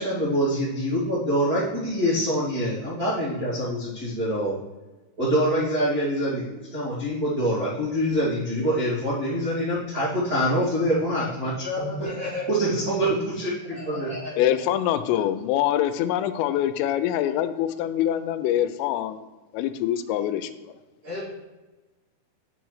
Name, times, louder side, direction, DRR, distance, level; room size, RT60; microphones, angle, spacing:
voice 1, 0.0-4.5 5.2-12.1 12.5-14.1, equal, 60° right, -11 dB, 0.9 m, -25 dB
voice 2, 11.8-12.6 12.9-13.0 13.7-14.7 21.0-21.3, left 1 dB, 40° right, -8 dB, 2.5 m, -34 dB
voice 3, 14.4-19.2 19.5-20.5, left 11 dB, 85° left, 11 dB, 3.1 m, -24 dB
9.2 x 7.5 x 3.2 m, 1.2 s
omnidirectional pair, 5.7 m